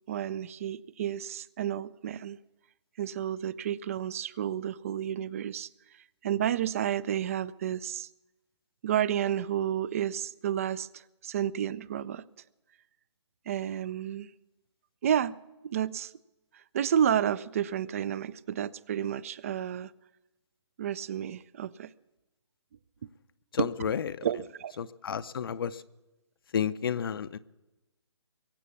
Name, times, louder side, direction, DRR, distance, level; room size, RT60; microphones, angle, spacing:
voice 1, 0.1-2.4 3.0-5.7 6.2-8.1 8.8-12.2 13.5-14.3 15.0-15.4 15.6-16.1 16.7-19.9 20.8-21.9 23.6-23.7 24.2-24.7, right 10 dB, 30° right, 0.4 m, -31 dB
voice 2, 23.5-24.3 24.8-25.8 26.5-27.4, left 7 dB, 50° left, 0.6 m, -31 dB
22.5 x 8.3 x 7.1 m
hypercardioid pair, 150°, 15 cm